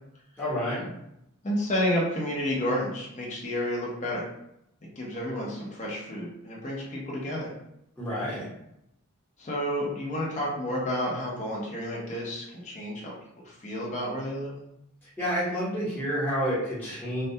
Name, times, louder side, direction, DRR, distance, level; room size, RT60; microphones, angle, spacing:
voice 1, 0.4-0.8 8.0-8.5 15.2-17.3, equal, 10° left, -10 dB, 0.9 m, -29 dB
voice 2, 1.4-4.2 5.0-7.5 9.4-13.1 13.4-14.6, equal, 35° left, -4 dB, 0.6 m, -30 dB
2.2 x 2.2 x 2.7 m, 0.80 s
head